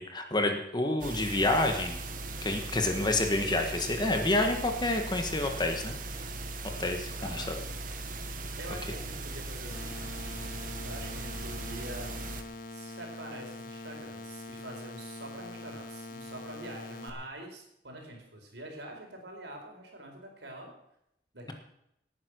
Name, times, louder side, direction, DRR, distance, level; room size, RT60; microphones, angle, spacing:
voice 1, 0.0-2.0 2.4-6.0 6.8-7.5, left 2 dB, 25° left, 4 dB, 1.5 m, -28 dB
sound 1, 1.0-12.4, right 2 dB, 50° right, 1.4 m, -39 dB
voice 2, 7.2-7.6 8.6-10.0 10.8-12.1 12.7-20.7 21.3-21.5, right 1 dB, 80° right, 2 dB, 4.4 m, -45 dB
sound 2, 9.7-17.1, left 2 dB, 55° left, 1.9 m, -44 dB
18.0 x 9.6 x 6.3 m, 0.78 s
head